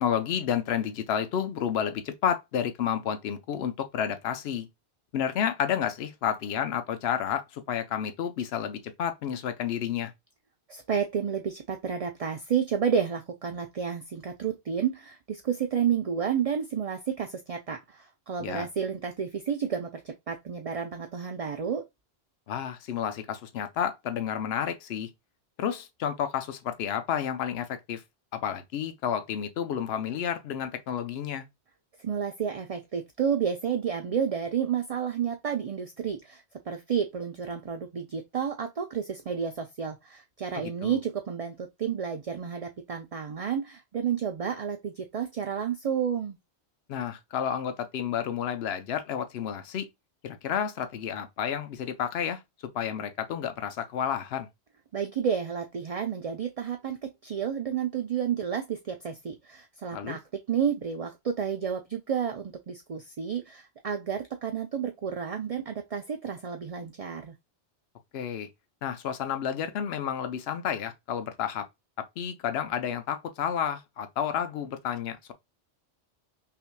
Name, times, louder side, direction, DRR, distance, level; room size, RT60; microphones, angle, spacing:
voice 1, 0.0-4.7 5.1-10.1 18.4-18.7 22.5-25.1 25.6-28.0 28.3-31.5 40.6-41.0 46.9-49.9 50.2-52.4 52.7-54.5 59.9-60.2 68.1-68.5 68.8-71.7 72.0-75.3, left 8 dB, 70° left, 0.9 m, -31 dB
voice 2, 10.7-21.8 32.0-46.4 54.9-60.2 60.5-67.3, right 7 dB, 45° right, 0.4 m, -31 dB
5.7 x 2.7 x 2.2 m
omnidirectional pair, 1.1 m